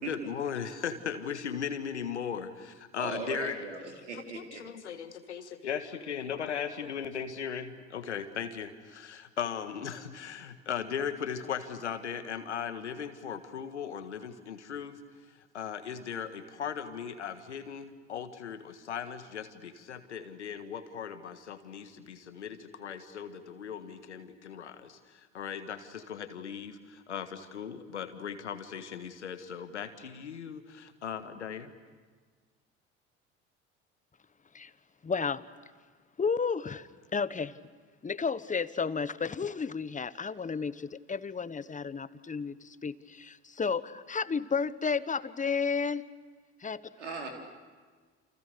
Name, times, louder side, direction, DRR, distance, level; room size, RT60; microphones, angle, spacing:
voice 1, 0.1-3.6 4.3-15.0 15.5-31.7, left 7 dB, 90° left, 9 dB, 1.7 m, -38 dB
voice 2, 3.0-4.6 47.0-47.3, right 4 dB, 90° right, 2 dB, 4.1 m, -38 dB
voice 3, 35.0-35.4 36.2-37.6 38.0-46.0 46.6-46.8, left 5 dB, 20° left, 15 dB, 1.2 m, -32 dB
29.5 x 28.5 x 6.8 m, 1.5 s
hypercardioid pair, 60°, 34 cm